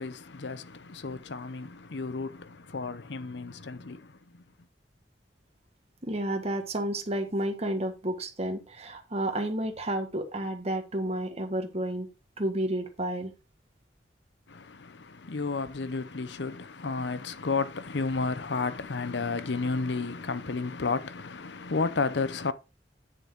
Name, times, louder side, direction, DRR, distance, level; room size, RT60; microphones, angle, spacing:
voice 1, 0.0-4.4 14.5-22.5, left 4 dB, 70° left, 0.8 m, -32 dB
voice 2, 6.0-12.1 12.4-13.3, right 1 dB, 35° right, 1.6 m, -31 dB
8.8 x 6.8 x 3.7 m
head